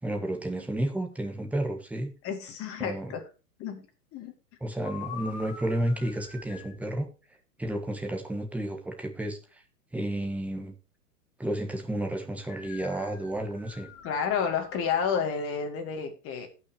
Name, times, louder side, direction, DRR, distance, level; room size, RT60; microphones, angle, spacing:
voice 1, 0.0-2.1 2.8-3.1 4.6-7.1 7.6-9.6 9.9-10.7 11.4-13.9, right 1 dB, 5° right, 3 dB, 1.7 m, -31 dB
voice 2, 2.2-3.2 3.6-3.8 4.1-4.3 14.0-16.5, left 6 dB, 30° left, 4 dB, 2.7 m, -30 dB
sound 1, 4.8-6.8 12.5-15.2, left 6 dB, 45° left, 3.2 m, -45 dB
17.5 x 6.2 x 3.0 m, 0.33 s
hypercardioid pair, 135°, 47 cm